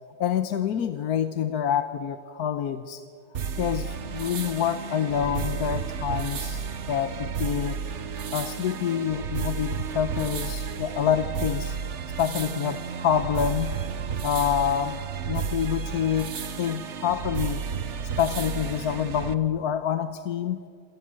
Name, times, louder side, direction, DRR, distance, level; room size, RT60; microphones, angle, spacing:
voice 1, 0.2-3.0 3.6-7.8 8.3-11.8 12.2-13.8 14.2-15.0 15.3-17.6 18.2-20.7, left 9 dB, 60° left, 10 dB, 1.3 m, -27 dB
sound 1, 3.3-19.3, right 6 dB, 45° right, 1.1 m, -32 dB
27.5 x 27.0 x 7.6 m, 2.3 s
omnidirectional pair, 2.0 m